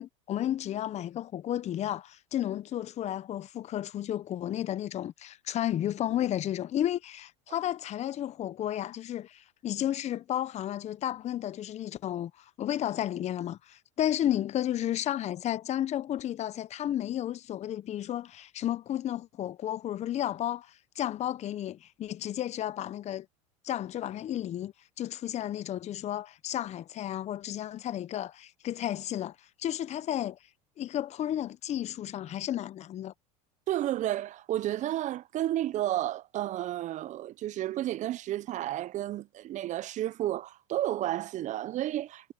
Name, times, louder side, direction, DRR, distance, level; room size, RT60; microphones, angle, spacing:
voice 1, 0.0-23.3 23.6-30.4 30.8-33.1, left 11 dB, 40° left, 0.9 m, -33 dB
voice 2, 33.7-42.3, right 13 dB, 45° right, 0.8 m, -32 dB
hypercardioid pair, 90°, 18 cm